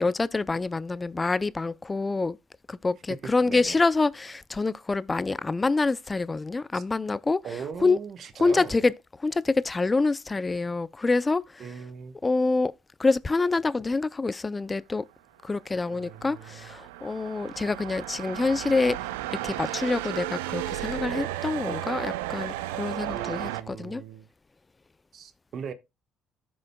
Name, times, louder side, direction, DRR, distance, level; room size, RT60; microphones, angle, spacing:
voice 1, 0.0-2.4 2.7-8.0 8.4-8.9 9.2-11.7 12.2-12.7 13.0-15.0 15.4-19.0 19.3-24.0, left 3 dB, 25° left, 0.4 m, -26 dB
voice 2, 3.2-3.8 6.7-6.8 7.4-8.8 11.6-12.1 15.9-16.9 23.1-24.3 25.1-25.7, right 7 dB, 55° right, 1.1 m, -39 dB
sound 1, 15.7-23.6, right 15 dB, 90° right, 0.5 m, -34 dB
14.5 x 6.2 x 2.2 m
supercardioid pair, 65°, 0 cm